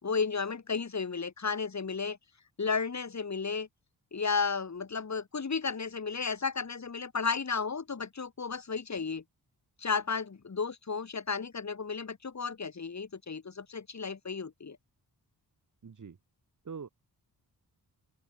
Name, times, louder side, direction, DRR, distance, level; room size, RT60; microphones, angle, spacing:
voice 1, 0.0-2.2 2.6-3.7 4.1-9.2 9.8-14.8, left 5 dB, 45° left, 4.4 m, -33 dB
voice 2, 15.8-16.2 16.6-16.9, right 6 dB, 50° right, 2.9 m, -43 dB
open air
wide cardioid pair, 140°, 39 cm